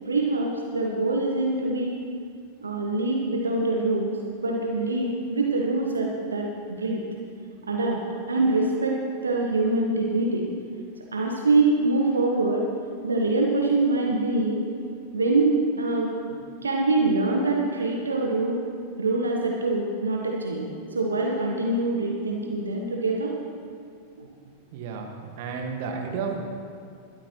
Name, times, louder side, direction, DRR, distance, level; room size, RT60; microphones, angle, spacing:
voice 1, 0.1-2.0 2.6-4.1 4.4-7.0 7.6-8.0 8.3-10.5 11.1-12.6 13.0-14.6 15.1-18.6 19.0-23.3 24.2-24.3, right 2 dB, 75° right, 0 dB, 1.2 m, -24 dB
voice 2, 24.7-25.1 25.4-26.4, right 5 dB, 50° right, 2 dB, 1.7 m, -31 dB
21.0 x 12.5 x 3.1 m, 2.4 s
figure-of-eight pair, 90°, 0 cm